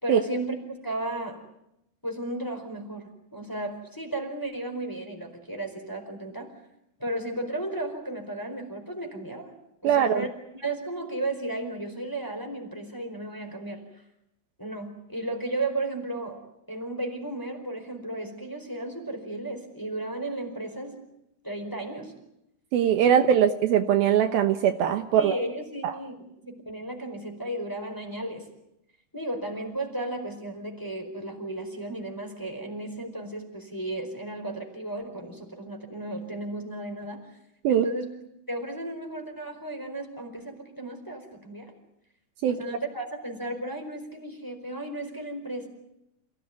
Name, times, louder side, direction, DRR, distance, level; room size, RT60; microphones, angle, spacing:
voice 1, 0.0-1.4 2.0-6.5 7.0-9.5 9.8-10.3 10.5-13.8 14.6-16.4 16.7-21.0 21.4-22.1 25.1-26.1 26.4-28.5 29.1-37.3 37.7-38.1 38.5-41.7 42.5-45.7, right 2 dB, 5° left, 3 dB, 4.1 m, -34 dB
voice 2, 9.8-10.3 22.7-25.4 25.8-25.9 37.6-37.9 42.4-42.8, right 9 dB, 70° right, 7 dB, 2.8 m, -21 dB
28.5 x 17.5 x 9.6 m, 0.84 s
omnidirectional pair, 4.7 m